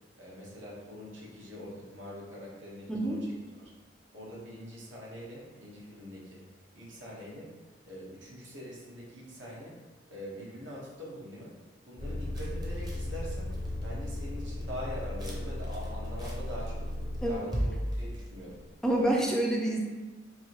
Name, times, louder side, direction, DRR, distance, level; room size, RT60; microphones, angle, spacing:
voice 1, 0.2-3.2 3.6-3.7 4.1-6.4 6.7-7.5 7.8-9.8 10.1-11.5 11.8-13.5 13.8-16.9 17.2-18.6, equal, 75° right, -5 dB, 1.2 m, -43 dB
voice 2, 2.9-3.2 17.2-17.4 18.8-19.8, right 1 dB, 5° left, -1 dB, 0.3 m, -27 dB
sound 1, 12.0-17.4, left 1 dB, 55° left, 0.6 m, -36 dB
sound 2, 12.3-13.8 14.2-14.3 14.6-15.3 15.6-16.9 17.1-19.2, equal, 20° right, 0.7 m, -36 dB
4.7 x 2.6 x 3.0 m, 1.2 s
head